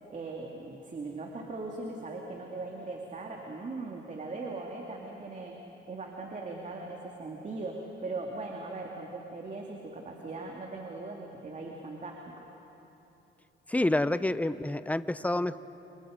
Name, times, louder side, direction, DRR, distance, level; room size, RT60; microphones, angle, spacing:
voice 1, 0.1-5.6 5.9-12.4, right 3 dB, 40° right, 0 dB, 2.4 m, -39 dB
voice 2, 13.7-15.6, left 1 dB, 5° left, 14 dB, 0.7 m, -28 dB
28.0 x 27.5 x 5.2 m, 3.0 s
cardioid pair, 90°, 20 cm